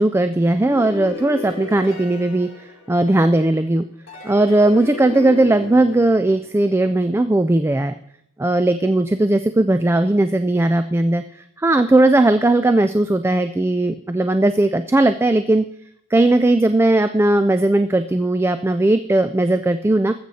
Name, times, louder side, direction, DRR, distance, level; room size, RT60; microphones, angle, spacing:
voice 1, 0.0-2.5 2.9-3.8 4.2-7.9 8.4-11.2 11.6-15.7 16.1-20.1, right 2 dB, 10° right, 10 dB, 0.3 m, -17 dB
sound 1, 0.6-3.4 4.1-6.9, left 2 dB, 60° left, 3.4 m, -34 dB
20.0 x 7.8 x 4.1 m, 0.73 s
head